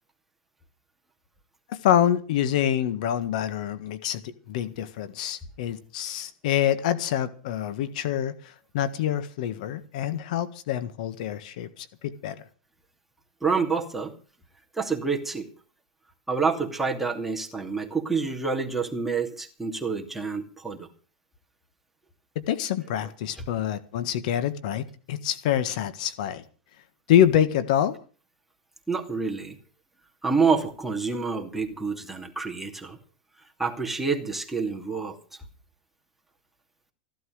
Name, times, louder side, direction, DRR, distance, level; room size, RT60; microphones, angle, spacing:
voice 1, 1.7-12.3 22.5-26.4 27.1-28.0, left 10 dB, 65° left, 14 dB, 1.5 m, -26 dB
voice 2, 13.4-14.1 14.7-15.5 16.3-20.9 28.9-29.6 30.2-33.0 33.6-35.2, right 4 dB, 5° right, 1 dB, 2.6 m, -27 dB
15.5 x 12.0 x 6.5 m, 0.39 s
supercardioid pair, 125°, 4 cm